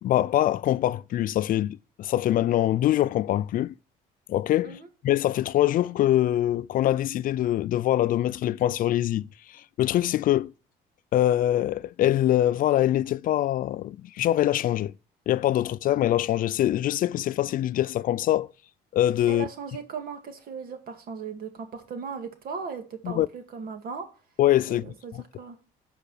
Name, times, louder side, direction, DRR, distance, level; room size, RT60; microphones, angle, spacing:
voice 1, 0.0-3.7 4.3-9.3 9.8-10.5 11.1-14.9 15.3-18.5 18.9-19.5 23.0-23.3 24.4-25.2, left 13 dB, 55° left, 0.4 m, -24 dB
voice 2, 19.3-24.1 24.7-25.6, right 5 dB, 60° right, 2.2 m, -37 dB
9.1 x 5.1 x 7.1 m
cardioid pair, 110°, 17 cm